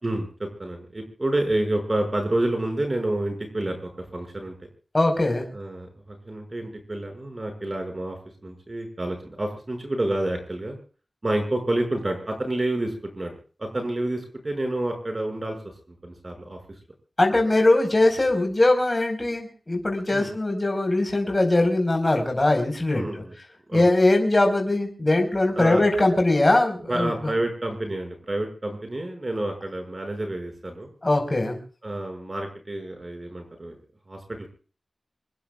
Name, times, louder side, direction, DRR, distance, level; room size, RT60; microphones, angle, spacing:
voice 1, 0.0-4.5 5.5-10.8 11.2-15.6 16.0-16.6 20.1-20.3 22.9-23.3 23.7-23.9 25.6-25.8 26.9-30.9 31.8-33.8 34.1-34.5, right 1 dB, 40° right, 4 dB, 6.3 m, -29 dB
voice 2, 4.9-5.4 17.2-23.1 23.7-27.1 31.0-31.6, left 2 dB, 30° left, 3 dB, 4.8 m, -21 dB
26.5 x 20.5 x 2.4 m, 0.40 s
wide cardioid pair, 85°, 0 cm